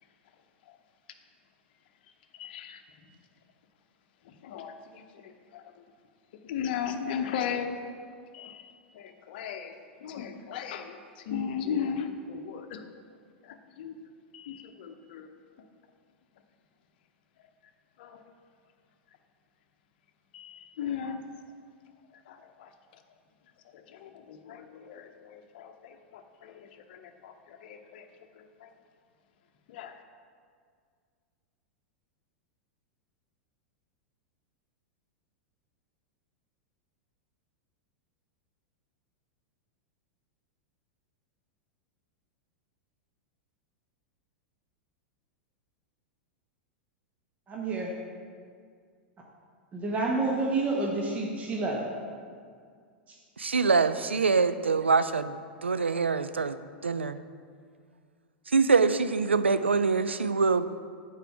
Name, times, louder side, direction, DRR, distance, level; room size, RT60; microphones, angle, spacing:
voice 1, 2.3-2.8 4.2-5.8 6.4-7.8 8.3-8.6 8.9-9.7 10.0-12.8 13.4-14.0 14.3-15.3 15.6-15.7 18.0-18.2 20.3-21.2 22.1-23.0 23.7-28.1 28.3-28.7 29.7-29.9, left 7 dB, 55° left, 7 dB, 0.7 m, -37 dB
voice 2, 47.5-47.9 49.7-51.9 53.1-53.2, right 3 dB, 25° right, -2 dB, 1.1 m, -29 dB
voice 3, 53.4-56.6 56.8-57.2 58.5-60.6, right 4 dB, 85° right, 12 dB, 0.4 m, -24 dB
8.9 x 4.8 x 5.8 m, 2.1 s
figure-of-eight pair, 95°, 6 cm